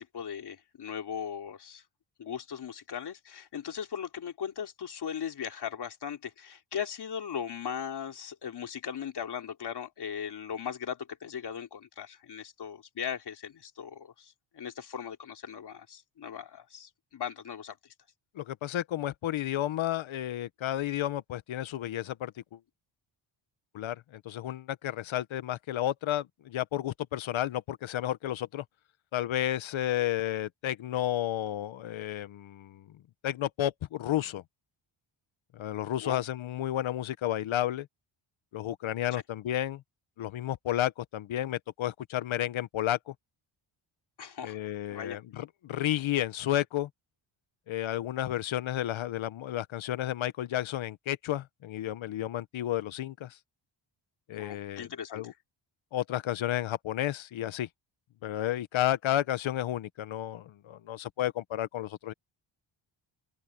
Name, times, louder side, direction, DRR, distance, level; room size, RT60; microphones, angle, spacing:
voice 1, 0.0-1.8 2.2-17.8 36.0-36.2 39.1-39.2 44.2-44.6 44.9-45.2 54.3-55.3, left 8 dB, 55° left, 3.3 m, -38 dB
voice 2, 18.3-22.6 23.7-28.6 29.1-32.9 33.2-34.4 35.5-37.9 38.5-39.8 40.2-43.1 44.4-46.9 47.7-53.4 54.3-55.3 55.9-57.7 58.2-62.1, left 12 dB, 70° left, 1.1 m, -32 dB
open air
wide cardioid pair, 145°, 49 cm